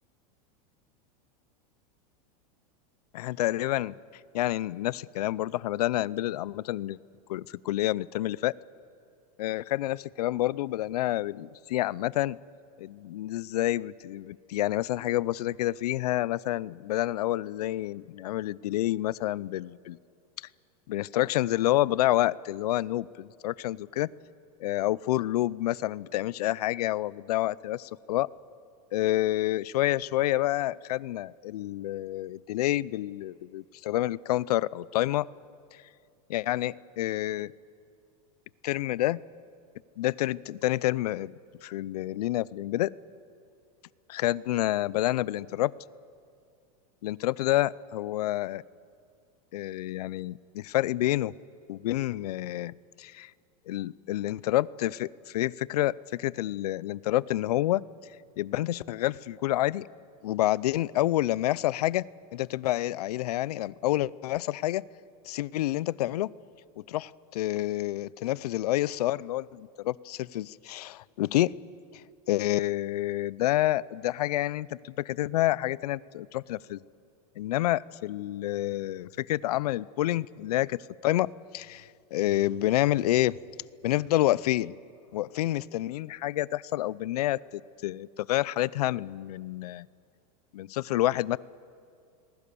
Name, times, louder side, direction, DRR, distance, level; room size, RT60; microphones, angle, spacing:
voice 1, 3.1-3.9 4.3-7.0 7.3-8.5 9.4-12.4 12.8-20.0 20.4-20.5 20.9-24.1 24.6-28.3 28.9-35.3 36.3-37.5 38.6-39.2 40.0-41.4 41.6-42.9 44.1-45.7 47.0-48.6 49.5-51.3 51.7-53.3 53.7-57.9 58.4-59.9 60.2-64.9 65.3-66.3 66.9-71.5 72.3-76.8 77.4-83.4 83.8-84.7 85.1-89.9 90.5-91.4, left 15 dB, 90° left, 22 dB, 0.6 m, -28 dB
27.5 x 20.5 x 7.0 m, 2.3 s
supercardioid pair, 180°, 19 cm